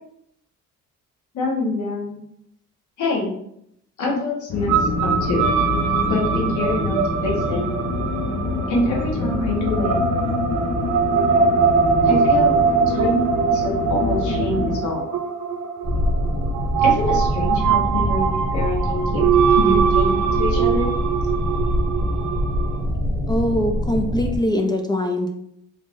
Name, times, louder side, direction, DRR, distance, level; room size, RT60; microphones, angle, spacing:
voice 1, 1.3-2.2 3.0-3.3 4.0-5.5 6.0-7.0 7.2-7.6 8.7-10.0 12.0-15.1 16.8-19.2 19.6-20.9, left 2 dB, 75° left, -2 dB, 1.3 m, -25 dB
sound 1, 4.5-14.8, left 2 dB, 45° left, 0.8 m, -25 dB
sound 2, 4.7-22.8, right 6 dB, 75° right, 0.6 m, -22 dB
sound 3, 15.8-24.4, equal, 30° right, 1.2 m, -24 dB
voice 2, 23.3-25.3, left 1 dB, 15° left, 3 dB, 0.4 m, -22 dB
3.5 x 3.1 x 2.6 m, 0.73 s
cardioid pair, 90°, 30 cm